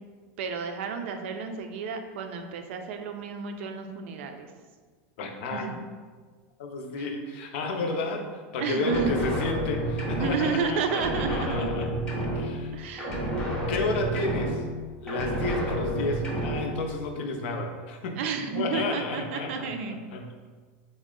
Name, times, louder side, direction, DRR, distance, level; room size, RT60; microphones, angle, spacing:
voice 1, 0.4-4.5 5.5-5.6 7.0-7.1 8.6-9.1 10.2-11.7 12.7-13.2 18.2-20.0, right 6 dB, 70° right, 6 dB, 0.4 m, -31 dB
voice 2, 5.2-5.7 6.6-11.9 12.3-12.7 13.7-14.6 15.0-19.7 20.1-20.2, left 2 dB, 65° left, 3 dB, 0.5 m, -31 dB
sound 1, 8.8-10.6 10.9-12.7 13.0-14.8 15.1-16.8, right 1 dB, 10° left, 0.6 m, -30 dB
3.5 x 2.0 x 3.7 m, 1.5 s
supercardioid pair, 170°, 7 cm